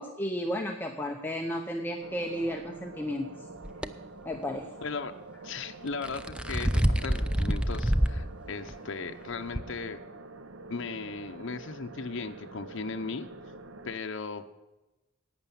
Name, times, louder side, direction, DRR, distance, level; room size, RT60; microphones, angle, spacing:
voice 1, 0.0-3.3 4.2-4.7, equal, 10° left, 1 dB, 0.8 m, -33 dB
sound 1, 2.0-14.0, right 3 dB, 70° right, 0.7 m, -46 dB
sound 2, 3.6-3.9 5.9-8.2 8.7-8.8 9.5-9.6, equal, 5° right, 0.4 m, -26 dB
voice 2, 4.8-5.2 5.4-10.0 10.7-13.3 13.8-14.5, left 4 dB, 65° left, 5 dB, 0.7 m, -37 dB
11.5 x 9.0 x 7.0 m, 1.1 s
head